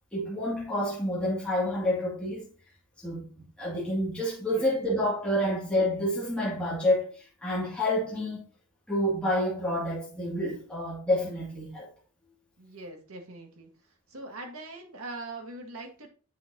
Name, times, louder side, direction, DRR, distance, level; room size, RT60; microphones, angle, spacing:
voice 1, 0.1-2.5 3.0-8.4 8.9-11.9, left 1 dB, 5° left, 2.0 m, -28 dB
voice 2, 12.6-13.7 14.1-16.1, right 2 dB, 70° right, 1.8 m, -42 dB
8.5 x 5.5 x 2.7 m
head